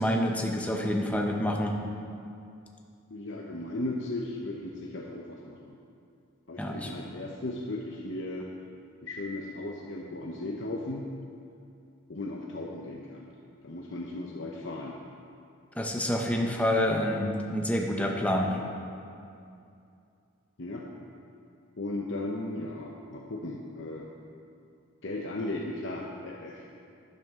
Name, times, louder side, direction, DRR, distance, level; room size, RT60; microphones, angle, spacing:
voice 1, 0.0-1.7 6.6-6.9 15.8-18.6, equal, 5° left, 1 dB, 0.8 m, -27 dB
voice 2, 3.1-5.7 6.5-8.5 9.0-11.1 12.1-13.3 13.6-15.0 20.6-20.8 21.8-24.1 25.0-26.7, left 2 dB, 60° left, -1 dB, 0.8 m, -36 dB
12.0 x 11.0 x 3.7 m, 2.5 s
head